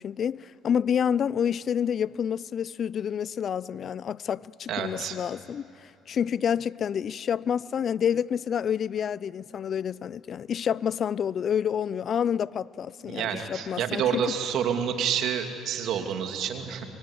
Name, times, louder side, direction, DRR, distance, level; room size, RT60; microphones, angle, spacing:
voice 1, 0.0-5.7 6.1-14.3, left 8 dB, 50° left, 0.5 m, -28 dB
voice 2, 4.7-5.2 13.1-16.9, right 8 dB, 70° right, 2.7 m, -28 dB
24.5 x 23.5 x 9.9 m
supercardioid pair, 85°, 0 cm